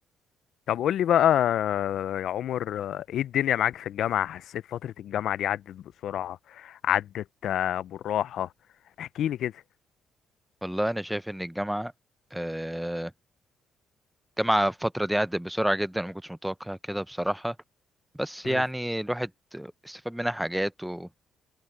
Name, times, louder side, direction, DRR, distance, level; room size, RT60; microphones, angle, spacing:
voice 1, 0.7-8.5 9.0-9.5 18.4-18.6, left 11 dB, 75° left, 0.4 m, -27 dB
voice 2, 10.6-11.9 12.3-13.1 14.4-17.6 18.2-21.1, equal, 5° right, 0.6 m, -29 dB
cardioid pair, 90°, 0 cm